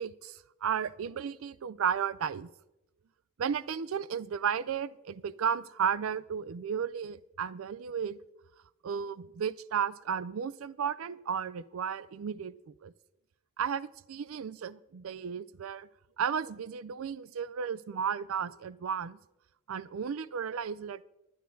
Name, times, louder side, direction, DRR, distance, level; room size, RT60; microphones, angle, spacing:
voice 1, 0.0-2.5 3.4-8.2 8.8-12.9 13.6-15.9 16.2-19.2 19.7-21.0, right 7 dB, 80° right, 18 dB, 0.4 m, -34 dB
20.5 x 10.5 x 2.7 m, 0.94 s
head